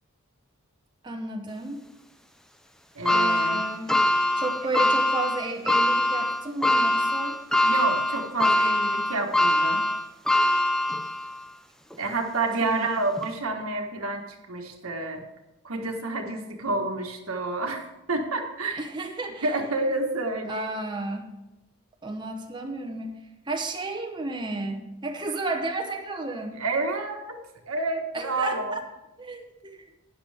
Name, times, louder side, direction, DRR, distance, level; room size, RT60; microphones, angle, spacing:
voice 1, 1.0-1.9 3.1-3.9 4.3-7.4 12.6-12.9 18.8-19.5 20.5-21.3 22.0-23.1 23.5-26.6 28.1-28.8 29.2-29.8, right 2 dB, 20° right, 3 dB, 0.9 m, -32 dB
voice 2, 2.9-3.6 7.6-9.8 12.0-14.2 14.5-15.2 15.6-18.8 19.4-20.7 26.6-27.2 27.7-28.7, right 2 dB, 85° right, 3 dB, 1.5 m, -29 dB
sound 1, 3.1-11.4 11.9-12.0 13.2-13.3, left 1 dB, 5° left, 0.5 m, -23 dB
12.0 x 9.8 x 3.5 m, 0.97 s
head